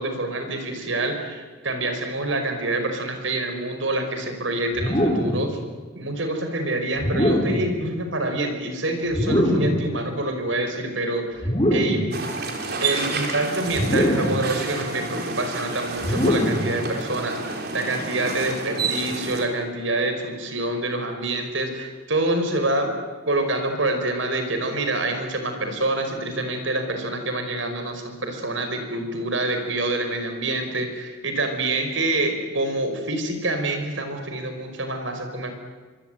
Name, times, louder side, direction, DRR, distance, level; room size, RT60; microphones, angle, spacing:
voice 1, 0.0-5.6 5.9-11.4 11.7-12.1 12.8-22.9 23.3-35.5, right 2 dB, 80° right, 6 dB, 5.2 m, -26 dB
sound 1, 4.7-5.4 7.0-7.7 9.1-9.8 11.4-12.1 13.7-14.4 16.0-16.7, equal, 25° left, 6.5 m, -22 dB
sound 2, 12.1-19.5, right 3 dB, 55° right, 3.8 m, -30 dB
25.5 x 24.5 x 9.3 m, 1.4 s
head